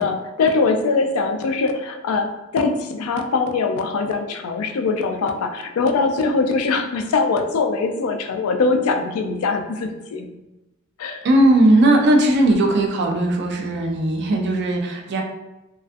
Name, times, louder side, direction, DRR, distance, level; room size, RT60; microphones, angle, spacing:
voice 1, 0.0-10.3 11.0-11.3, left 4 dB, 70° left, 5 dB, 0.3 m, -22 dB
voice 2, 11.2-15.2, right 1 dB, 50° right, 2 dB, 0.4 m, -17 dB
2.4 x 2.3 x 2.5 m, 0.99 s
head